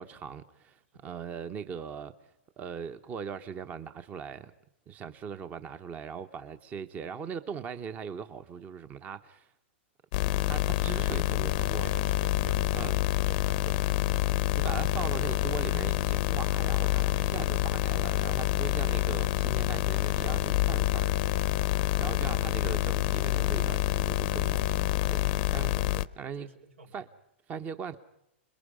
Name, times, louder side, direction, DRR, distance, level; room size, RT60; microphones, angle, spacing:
voice 1, 0.0-2.1 2.6-4.5 4.9-9.5 10.5-11.9 12.7-13.0 14.5-21.1 22.0-25.2 25.5-25.7 26.2-26.5 26.9-27.1 27.5-28.0, right 6 dB, 25° right, 0.9 m, -40 dB
sound 1, 10.1-26.1, left 15 dB, 50° left, 0.7 m, -27 dB
voice 2, 11.8-14.4 17.1-17.4 21.8-22.0 25.2-26.1 26.4-27.0, right 3 dB, 85° right, 3.1 m, -50 dB
28.5 x 21.5 x 5.0 m
hypercardioid pair, 140°, 7 cm